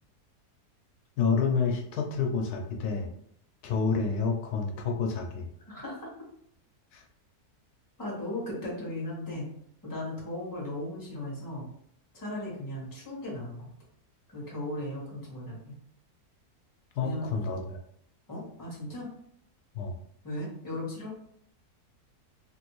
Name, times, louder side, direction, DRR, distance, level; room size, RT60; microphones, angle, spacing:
voice 1, 1.2-3.1 3.6-5.5 6.9-7.0 16.9-17.8 19.7-19.9, left 5 dB, 80° left, 2 dB, 1.1 m, -29 dB
voice 2, 5.7-6.1 8.0-9.5 9.8-11.7 12.1-13.7 14.3-15.8 17.0-17.3 18.3-19.1 20.2-21.1, left 1 dB, 15° left, -4 dB, 1.1 m, -37 dB
3.1 x 2.6 x 2.9 m, 0.67 s
omnidirectional pair, 1.7 m